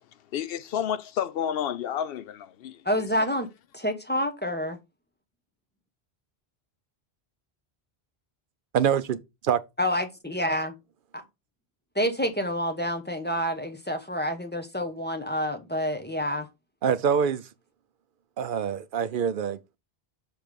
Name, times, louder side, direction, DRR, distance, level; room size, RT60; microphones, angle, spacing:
voice 1, 0.3-2.8, left 9 dB, 70° left, 0.7 m, -30 dB
voice 2, 2.8-3.5 3.7-4.8 9.8-10.7 11.1-11.2 11.9-16.5, equal, 10° left, 1.0 m, -28 dB
voice 3, 8.7-9.2 9.4-9.6 16.8-17.4 18.4-19.6, right 7 dB, 60° right, 0.8 m, -25 dB
7.1 x 3.3 x 5.2 m
omnidirectional pair, 1.1 m